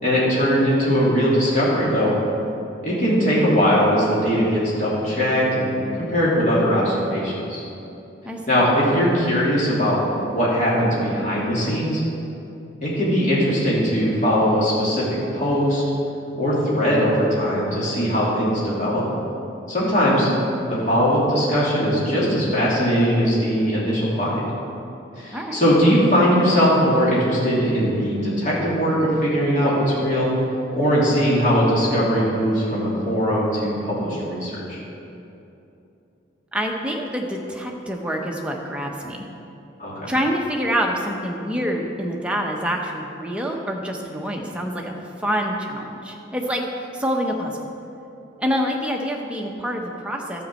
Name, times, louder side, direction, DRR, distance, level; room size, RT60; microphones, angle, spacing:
voice 1, 0.0-2.1 2.8-5.7 6.0-7.6 8.5-10.0 10.3-12.0 12.8-15.8 16.3-19.0 19.7-20.3 20.7-24.4 25.2-30.3 30.7-34.8 39.8-40.1, equal, 40° left, -7 dB, 2.9 m, -20 dB
voice 2, 25.3-25.7 36.5-39.3 40.1-47.6 48.4-50.4, equal, 5° right, 0 dB, 0.9 m, -26 dB
12.0 x 5.2 x 7.6 m, 2.8 s
head